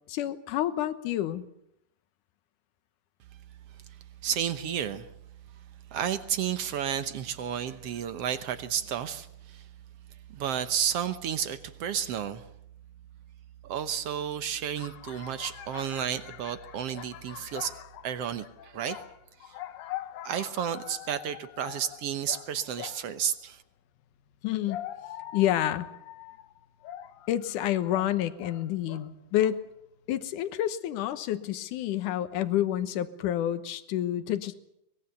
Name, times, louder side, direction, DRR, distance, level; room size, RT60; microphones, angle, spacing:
voice 1, 0.1-1.4 24.4-24.8 25.3-25.9 27.3-29.6 30.1-34.5, left 12 dB, 70° left, 12 dB, 2.6 m, -28 dB
voice 2, 4.2-5.1 5.9-9.7 10.3-12.4 13.6-17.8 18.0-19.0 19.4-19.5 20.2-23.6, right 9 dB, 65° right, 11 dB, 1.5 m, -32 dB
sound 1, 14.8-23.2 24.3-29.1 29.4-29.8, left 12 dB, 85° left, 2.7 m, -43 dB
23.5 x 21.0 x 7.0 m, 0.77 s
omnidirectional pair, 3.8 m